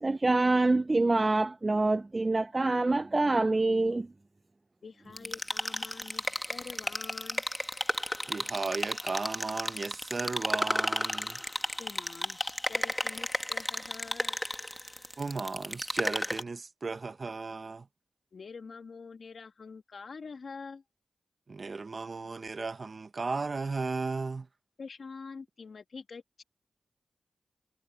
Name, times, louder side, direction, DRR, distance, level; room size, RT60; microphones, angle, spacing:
voice 1, 0.0-4.1, right 2 dB, 35° right, 0.5 m, -26 dB
voice 2, 4.8-7.5 11.8-14.4 18.3-20.8 24.8-26.4, left 5 dB, 65° left, 2.1 m, -46 dB
sound 1, 5.2-16.4, left 1 dB, 10° left, 2.0 m, -33 dB
voice 3, 8.3-11.4 15.2-17.9 21.5-24.5, right 4 dB, 50° right, 1.0 m, -35 dB
cardioid pair, 50°, 0 cm